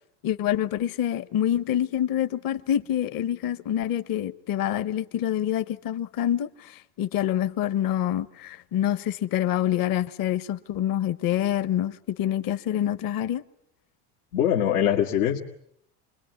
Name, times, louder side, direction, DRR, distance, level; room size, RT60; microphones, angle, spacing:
voice 1, 0.2-13.4, left 11 dB, 55° left, 1.2 m, -26 dB
voice 2, 14.3-15.4, left 10 dB, 90° left, 2.2 m, -22 dB
28.0 x 22.0 x 9.5 m
cardioid pair, 120°, 41 cm